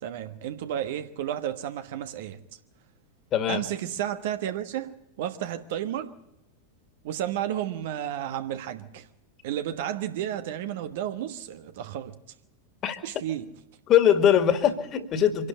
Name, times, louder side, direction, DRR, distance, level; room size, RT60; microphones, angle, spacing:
voice 1, 0.0-2.4 3.5-6.1 7.0-9.1 9.4-12.1 13.0-13.5, right 11 dB, 55° right, 1.2 m, -32 dB
voice 2, 3.3-3.6 12.8-13.0 13.9-15.5, left 9 dB, 30° left, 2.3 m, -21 dB
25.0 x 12.0 x 9.9 m
figure-of-eight pair, 90°, 0 cm